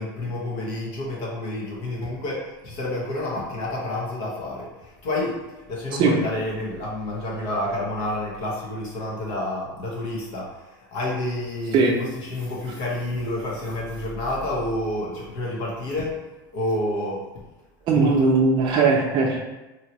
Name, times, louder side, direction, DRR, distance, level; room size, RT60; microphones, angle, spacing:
voice 1, 0.0-5.4 5.7-10.5 10.9-16.2 16.5-17.2 17.9-18.3, left 1 dB, 60° left, -4 dB, 1.3 m, -29 dB
voice 2, 17.9-19.4, right 4 dB, 40° right, 0 dB, 0.6 m, -19 dB
3.0 x 2.7 x 3.0 m, 1.1 s
supercardioid pair, 120°, 12 cm